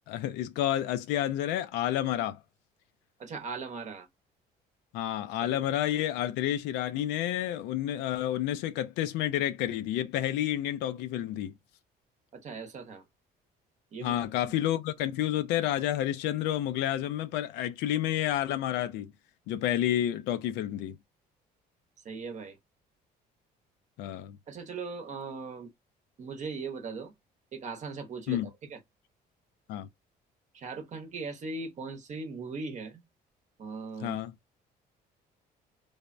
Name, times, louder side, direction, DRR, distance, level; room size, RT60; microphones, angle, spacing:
voice 1, 0.1-2.4 4.9-11.5 14.0-19.1 19.5-21.0 24.0-24.4 28.3-28.5 29.7-29.9 34.0-34.3, left 12 dB, 90° left, 0.4 m, -30 dB
voice 2, 3.2-4.1 5.4-5.6 12.3-13.0 13.9-14.2 22.0-22.6 24.5-25.7 26.2-27.1 27.5-28.8 30.5-33.0 33.6-34.2, right 4 dB, 45° right, 0.7 m, -39 dB
3.3 x 2.1 x 2.4 m
cardioid pair, 110°, 17 cm